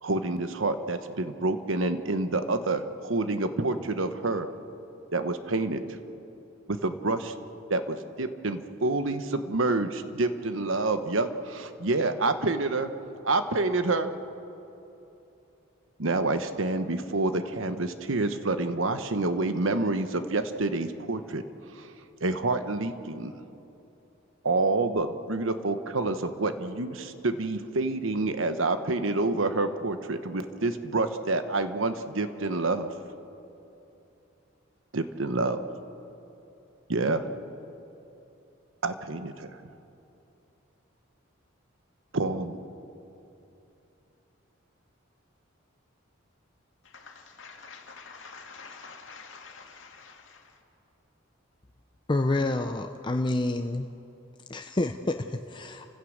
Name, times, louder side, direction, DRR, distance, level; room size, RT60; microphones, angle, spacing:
voice 1, 0.0-4.5 5.1-5.8 6.7-7.3 7.7-12.9 13.2-14.1 16.0-21.4 21.8-21.9 22.2-23.3 24.4-32.9 34.9-35.6 36.9-37.2 38.8-39.5 42.1-42.6, right 2 dB, 75° right, 1.1 m, -28 dB
voice 2, 46.8-50.5, left 5 dB, 65° left, 2.4 m, -47 dB
voice 3, 52.1-53.9 54.5-55.9, left 2 dB, 25° left, 0.6 m, -28 dB
30.0 x 16.0 x 6.5 m
head